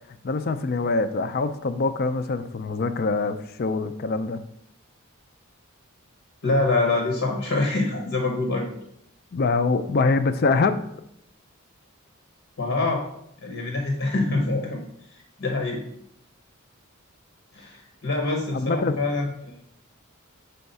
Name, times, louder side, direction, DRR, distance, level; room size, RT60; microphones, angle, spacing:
voice 1, 0.2-4.4 9.3-10.8 18.5-19.0, left 3 dB, 45° left, 11 dB, 0.4 m, -24 dB
voice 2, 6.4-8.7 12.6-13.0 13.4-14.8 15.4-15.8 17.5-19.6, left 2 dB, 70° left, 1 dB, 1.0 m, -25 dB
5.6 x 3.5 x 5.4 m, 0.74 s
head